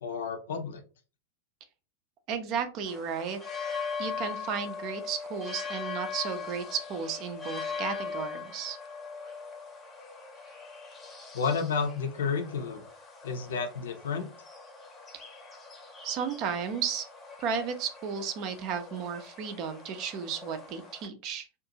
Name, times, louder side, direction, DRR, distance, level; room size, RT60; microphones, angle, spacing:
voice 1, 0.0-0.8 11.3-12.8 13.2-14.3, left 5 dB, 60° left, 6 dB, 0.5 m, -31 dB
voice 2, 2.3-3.4 4.0-8.8 16.0-17.0 17.4-21.5, right 7 dB, 40° right, 8 dB, 0.5 m, -34 dB
sound 1, 2.8-21.1, left 5 dB, 20° left, 0.7 m, -41 dB
2.6 x 2.4 x 2.7 m, 0.33 s
figure-of-eight pair, 90°, 0 cm